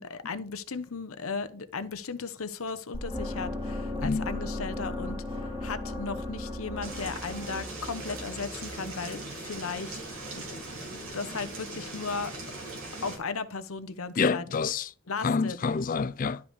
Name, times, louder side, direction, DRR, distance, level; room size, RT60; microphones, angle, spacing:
voice 1, 0.0-10.0 10.3-10.6 10.9-12.3 13.0-14.5 15.1-15.6, left 4 dB, 85° left, 0.9 m, -36 dB
sound 1, 2.9-9.0, left 1 dB, 20° right, 2.4 m, -36 dB
sound 2, 6.8-13.2, right 2 dB, 90° right, 3.2 m, -40 dB
voice 2, 14.2-14.9 15.2-16.4, left 5 dB, 40° left, 0.4 m, -27 dB
11.5 x 5.2 x 3.2 m
head